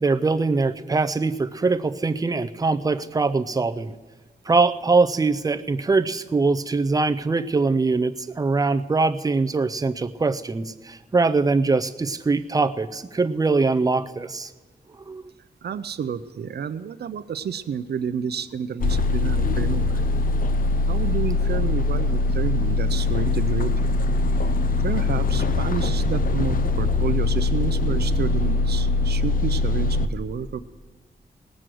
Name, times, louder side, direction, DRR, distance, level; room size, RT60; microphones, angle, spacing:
voice 1, 0.0-3.9 4.5-14.5 15.1-15.2, right 3 dB, 20° right, 11 dB, 0.4 m, -22 dB
voice 2, 15.6-20.0 20.9-24.0 24.4-30.6, right 7 dB, 80° right, 13 dB, 0.5 m, -30 dB
sound 1, 18.8-30.1, left 3 dB, 60° left, 0.6 m, -22 dB
18.5 x 6.3 x 7.7 m, 1.3 s
wide cardioid pair, 165°, 17 cm